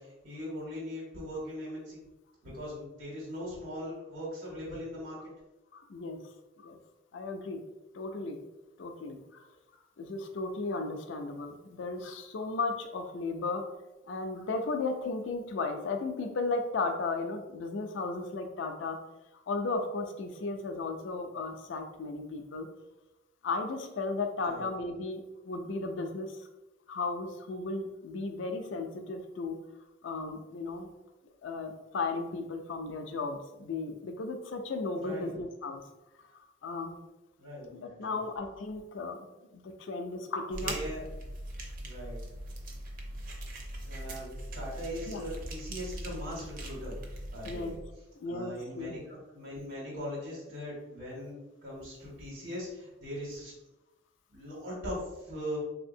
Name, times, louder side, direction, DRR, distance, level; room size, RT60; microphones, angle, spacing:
voice 1, 0.0-2.0 2.4-5.2 24.4-24.7 34.9-35.3 37.4-38.2 40.6-41.0 41.8-42.2 43.9-47.0 47.3-47.8 48.2-53.5 54.3-55.6, equal, 85° right, -8 dB, 1.4 m, -40 dB
voice 2, 5.7-6.2 6.6-6.8 7.1-7.6 7.9-8.4 8.8-9.4 10.0-13.6 14.1-19.0 19.5-22.7 23.4-25.2 25.5-26.3 26.9-29.6 30.0-30.9 31.4-35.8 36.6-37.0 37.7-39.3 39.5-40.8 45.1-45.2 47.4-47.7 48.2-48.9, left 3 dB, 70° left, 5 dB, 0.4 m, -35 dB
sound 1, 40.5-47.8, right 1 dB, 45° right, 0.6 m, -41 dB
3.3 x 2.7 x 2.6 m, 1.0 s
head